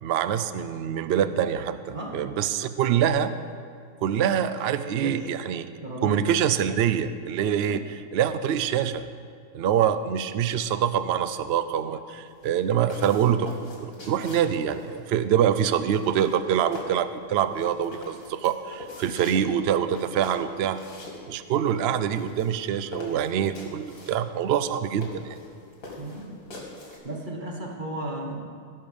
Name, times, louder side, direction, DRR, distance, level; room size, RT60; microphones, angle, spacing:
voice 1, 0.0-3.3 4.0-5.7 6.0-7.8 8.1-9.1 9.5-20.8 21.3-25.4, right 9 dB, 80° right, 12 dB, 0.5 m, -25 dB
voice 2, 1.9-2.3 5.0-5.3 5.7-6.2 7.6-7.7 26.0-26.4 27.0-28.4, right 1 dB, 35° right, 1 dB, 1.4 m, -35 dB
sound 1, 12.3-27.0, left 1 dB, 65° left, 2.6 m, -43 dB
16.5 x 5.7 x 6.8 m, 2.3 s
omnidirectional pair, 1.6 m